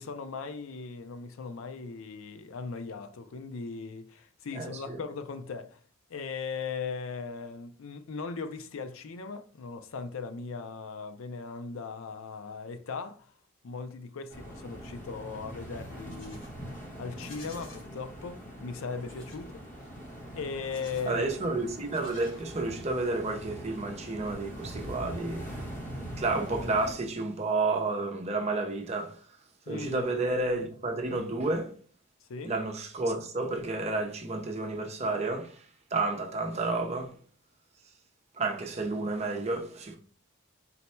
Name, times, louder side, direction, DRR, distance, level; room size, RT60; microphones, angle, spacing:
voice 1, 0.0-5.8 6.1-13.3 13.6-16.4 17.0-20.0 20.4-21.3 29.7-30.1 32.2-32.6, left 5 dB, 80° left, 0.5 m, -38 dB
voice 2, 4.5-5.0 21.1-25.5 26.2-29.2 29.7-31.7 32.4-35.6 35.9-37.1 38.4-40.0, right 3 dB, 30° right, 0.6 m, -31 dB
sound 1, 14.3-26.9, equal, 40° left, 1.0 m, -42 dB
Livestock farm animals working animals, 15.8-16.5 17.1-17.9 19.0-19.5 20.5-21.2 21.8-22.8, left 2 dB, 65° left, 1.9 m, -53 dB
4.1 x 2.2 x 4.2 m
head